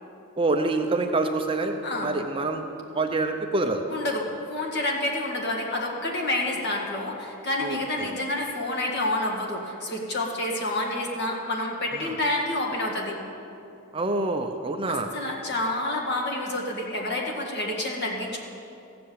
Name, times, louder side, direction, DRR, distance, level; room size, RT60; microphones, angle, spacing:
voice 1, 0.4-2.6 2.9-3.9 7.6-8.1 11.9-12.1 13.9-15.1, right 2 dB, 25° right, 5 dB, 0.6 m, -26 dB
voice 2, 1.8-2.1 3.9-13.2 14.9-18.4, left 1 dB, 50° left, -1 dB, 1.9 m, -28 dB
14.5 x 7.8 x 8.5 m, 2.8 s
head